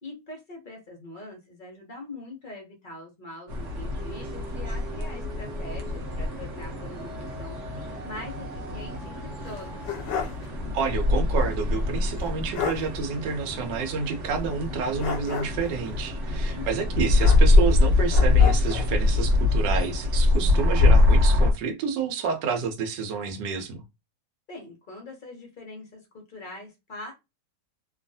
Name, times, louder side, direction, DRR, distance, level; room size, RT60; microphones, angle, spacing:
voice 1, 0.0-8.5 8.7-9.9 16.5-17.1 24.5-27.1, left 2 dB, 55° left, 0.5 m, -43 dB
sound 1, 3.5-21.5, left 2 dB, 55° right, 0.9 m, -24 dB
sound 2, 4.0-10.0, equal, 30° right, 1.4 m, -45 dB
sound 3, 9.4-10.5 10.8-10.9 12.2-12.3 12.5-12.9 15.0-15.7 17.2-17.8 18.1-18.9, left 8 dB, 90° left, 1.3 m, -32 dB
voice 2, 10.7-23.8, right 5 dB, 80° right, 1.3 m, -29 dB
3.0 x 2.3 x 2.6 m
omnidirectional pair, 1.9 m